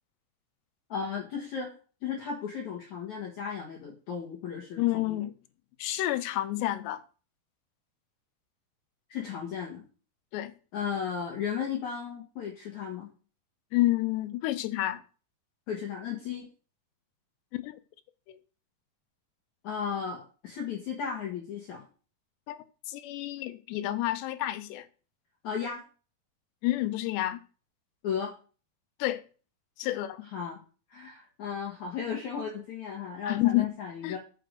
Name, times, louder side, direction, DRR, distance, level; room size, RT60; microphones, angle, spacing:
voice 1, 0.9-1.7 2.0-5.2 9.1-9.8 10.7-13.1 15.7-16.5 19.6-21.9 25.4-25.8 28.0-28.3 30.3-30.6 30.9-34.2, left 7 dB, 60° left, 2.2 m, -35 dB
voice 2, 4.8-5.3 5.8-7.0 10.3-10.5 13.7-15.0 17.5-17.8 18.3-18.4 22.5-24.9 26.6-27.4 29.0-29.2 29.8-30.2 33.3-33.7 34.0-34.2, left 16 dB, 80° left, 2.8 m, -29 dB
6.7 x 6.5 x 6.6 m
omnidirectional pair, 5.0 m